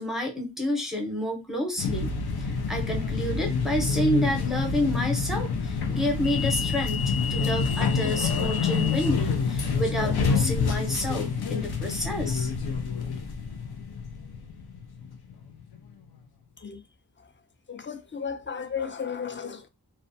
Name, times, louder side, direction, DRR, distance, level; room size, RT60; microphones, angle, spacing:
voice 1, 0.0-2.1 2.4-7.0 7.3-12.5, left 1 dB, ahead, 0.8 m, -29 dB
sound 1, 1.8-15.7, left 5 dB, 85° left, 0.5 m, -27 dB
voice 2, 17.7-19.7, left 6 dB, 30° left, 0.4 m, -34 dB
2.3 x 2.2 x 2.6 m
wide cardioid pair, 45°, 37 cm